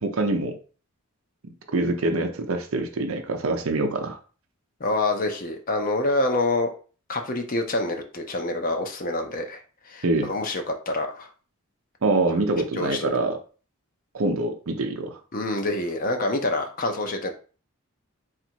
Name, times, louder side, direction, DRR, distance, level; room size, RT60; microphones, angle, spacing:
voice 1, 0.0-0.6 1.7-4.2 10.0-10.3 12.0-13.4 14.1-15.2, right 2 dB, 80° right, 5 dB, 0.6 m, -25 dB
voice 2, 4.8-6.7 7.1-11.3 12.7-13.1 15.3-17.3, left 2 dB, 40° left, 5 dB, 0.6 m, -26 dB
4.0 x 2.5 x 4.4 m, 0.38 s
head